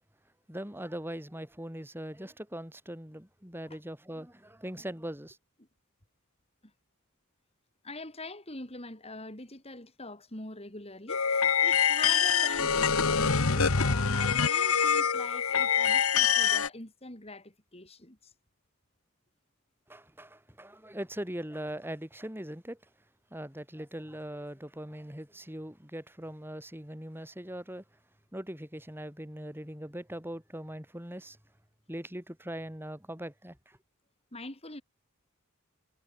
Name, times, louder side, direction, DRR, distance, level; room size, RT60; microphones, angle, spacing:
voice 1, 0.5-5.4 19.9-22.8 23.3-27.8 28.3-31.4 31.9-33.8, right 1 dB, 10° right, 5.2 m, -41 dB
voice 2, 7.8-18.3 34.3-34.8, left 2 dB, 25° left, 5.4 m, -43 dB
sound 1, 11.1-16.7, left 7 dB, 70° left, 1.5 m, -25 dB
head